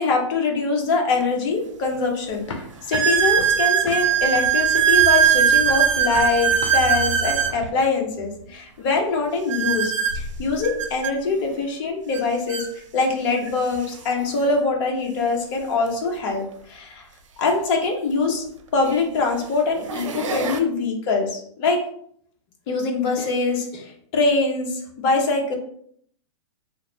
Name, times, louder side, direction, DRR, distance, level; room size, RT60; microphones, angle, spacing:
voice 1, 0.0-2.5 2.9-12.6 12.9-17.0 17.4-18.4 18.7-21.8 22.7-25.5, left 3 dB, 45° left, 1 dB, 0.9 m, -23 dB
sound 1, 1.2-1.3 1.9-2.0 2.9-7.6 9.5-11.1 12.1-12.2 12.5-12.7 13.5-13.6 15.8-15.9 18.0-18.1 18.8-19.1 19.6-20.6, right 8 dB, 85° right, 0.6 m, -20 dB
sound 2, 2.3-7.7, left 1 dB, 75° left, 0.8 m, -37 dB
2.8 x 2.2 x 3.9 m, 0.64 s
hypercardioid pair, 125°, 16 cm